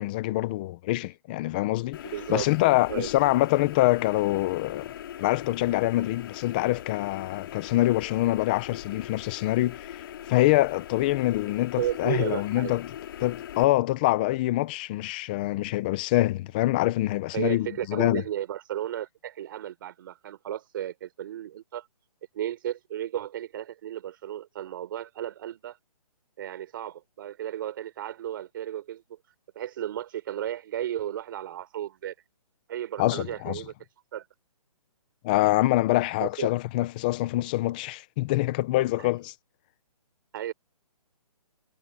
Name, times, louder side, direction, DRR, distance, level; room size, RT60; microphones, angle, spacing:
voice 1, 0.0-2.0 2.3-4.9 5.2-12.9 13.2-18.2 33.0-33.6 35.2-39.3, left 17 dB, 15° left, 0.6 m, -25 dB
sound 1, 1.9-13.6, left 11 dB, 35° left, 3.2 m, -40 dB
voice 2, 2.0-2.5 2.9-3.1 11.8-12.7 17.3-21.9 22.3-25.8 26.4-29.0 29.6-32.1 32.7-33.7 34.1-34.3 36.2-36.5 39.0-39.1 40.3-40.5, right 11 dB, 35° right, 5.5 m, -34 dB
hypercardioid pair, 165°, 20 cm